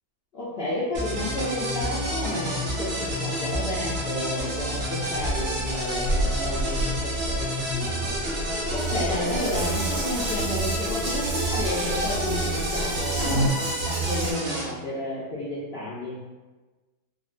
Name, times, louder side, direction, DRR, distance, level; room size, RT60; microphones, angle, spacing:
voice 1, 0.3-8.2 8.7-13.6 13.8-16.3, left 1 dB, 75° left, -8 dB, 0.5 m, -32 dB
sound 1, 0.9-14.7, right 1 dB, 55° right, 0.8 m, -29 dB
Water tap faucet / Bathtub (filling or washing) / Drip, 5.1-14.3, right 1 dB, 80° right, 1.4 m, -33 dB
sound 2, 8.0-13.5, equal, 20° right, 0.3 m, -32 dB
3.7 x 2.1 x 2.4 m, 1.2 s
omnidirectional pair, 1.7 m